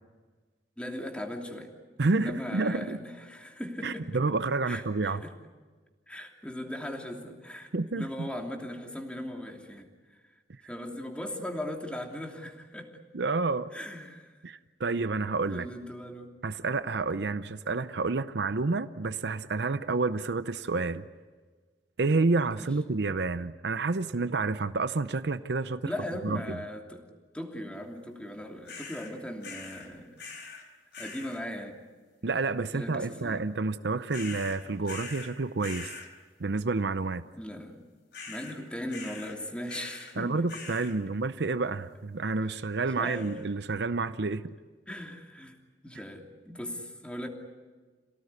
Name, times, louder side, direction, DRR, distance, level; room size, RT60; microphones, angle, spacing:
voice 1, 0.8-1.7 2.1-4.1 4.7-5.3 6.1-7.7 8.0-10.2 10.7-12.9 13.7-14.3 15.5-16.3 22.5-22.7 25.8-27.1 27.3-30.2 31.0-31.8 32.7-33.5 37.4-37.8 38.3-40.4 42.5-42.6 43.0-43.3 44.9-45.6 45.8-47.3, left 1 dB, 5° left, 2 dB, 2.9 m, -38 dB
voice 2, 2.0-3.0 3.8-5.2 7.7-8.3 13.1-13.7 14.4-15.7 16.4-21.0 22.0-25.9 26.2-26.6 32.2-35.9 36.4-37.2 40.2-44.5, right 3 dB, 70° right, 12 dB, 0.7 m, -29 dB
sound 1, 28.7-29.1 29.4-29.9 30.2-30.6 30.9-31.4 34.1-35.3 35.6-36.1 38.1-38.6 38.9-39.4 39.7-40.1 40.5-40.9 43.0-43.4, left 4 dB, 70° left, 4.2 m, -43 dB
28.0 x 18.0 x 9.7 m, 1.4 s
head